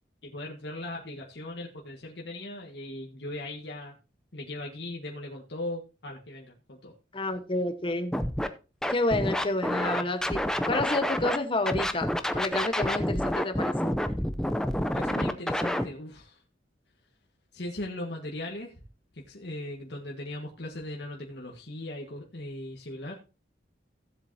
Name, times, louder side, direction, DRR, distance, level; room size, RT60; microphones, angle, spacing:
voice 1, 0.2-3.9 4.3-6.9 14.9-16.4 17.5-18.8 19.1-23.2, left 1 dB, 65° left, -1 dB, 1.6 m, -38 dB
voice 2, 7.1-8.1 8.9-14.0, left 2 dB, 30° left, 7 dB, 1.1 m, -30 dB
Scratching (performance technique), 8.1-8.5 8.8-11.4 11.7-15.8, equal, 5° left, 0.6 m, -28 dB
16.0 x 7.6 x 2.8 m, 0.31 s
head